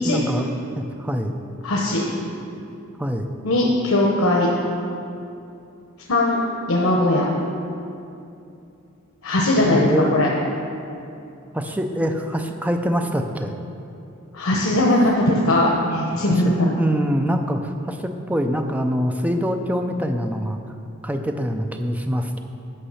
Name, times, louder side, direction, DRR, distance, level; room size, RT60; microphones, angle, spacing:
voice 1, 0.1-1.4 3.0-3.3 9.6-10.1 11.5-13.6 16.1-20.6 21.0-22.4, equal, 5° right, 5 dB, 0.5 m, -24 dB
voice 2, 1.6-2.0 3.4-4.5 6.1-6.4 6.7-7.2 9.2-10.3 14.3-16.8, left 1 dB, 85° left, -3 dB, 1.0 m, -19 dB
10.0 x 6.0 x 5.6 m, 2.7 s
head